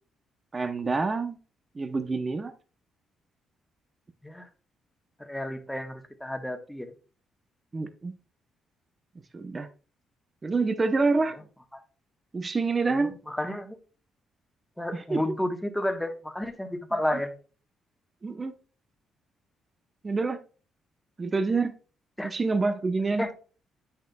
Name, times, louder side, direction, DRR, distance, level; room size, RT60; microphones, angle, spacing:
voice 1, 0.5-1.4 1.7-2.5 7.7-8.1 9.3-9.7 10.4-11.4 12.3-13.1 15.1-15.2 18.2-18.5 20.0-20.4 21.2-21.7 22.2-23.2, right 3 dB, 30° right, 0.7 m, -27 dB
voice 2, 5.2-6.9 11.3-11.4 11.7-11.8 12.9-13.8 14.8-17.3 22.2-22.3 23.2-23.3, left 1 dB, 5° left, 1.2 m, -31 dB
8.4 x 6.6 x 2.3 m
cardioid pair, 90°, 0 cm